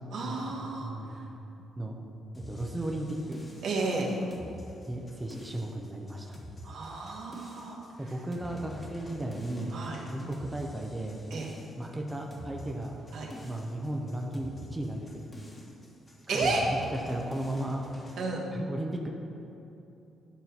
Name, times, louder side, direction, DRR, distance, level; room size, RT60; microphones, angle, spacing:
voice 1, 0.1-0.9 3.6-4.1 6.6-7.8 9.7-10.0 11.3-11.5 13.1-13.3 16.3-16.6 18.2-18.4, right 3 dB, 70° right, -2 dB, 1.4 m, -32 dB
voice 2, 0.8-1.1 1.8-2.0 2.5-3.4 4.8-6.4 8.0-9.8 10.1-11.2 11.8-13.0 13.4-15.2 16.3-16.5 16.9-17.8 18.5-19.1, right 1 dB, 15° right, 0 dB, 0.8 m, -35 dB
sound 1, 2.3-18.2, equal, 20° left, 1.4 m, -47 dB
10.5 x 3.8 x 5.8 m, 2.9 s
cardioid pair, 90°, 0 cm